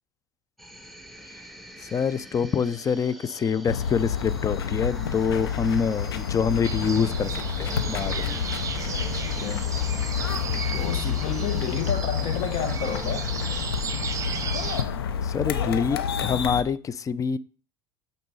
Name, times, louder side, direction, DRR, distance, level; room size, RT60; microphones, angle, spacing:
sound 1, 0.6-11.8, right 1 dB, ahead, 1.0 m, -46 dB
voice 1, 1.8-8.4 15.2-17.4, left 6 dB, 25° left, 0.5 m, -26 dB
sound 2, 3.7-16.6, left 8 dB, 90° left, 0.8 m, -29 dB
sound 3, 6.6-14.8, right 6 dB, 25° right, 1.0 m, -34 dB
voice 2, 10.7-13.3, left 7 dB, 50° left, 1.7 m, -30 dB
8.8 x 4.1 x 4.8 m
hypercardioid pair, 90°, 12 cm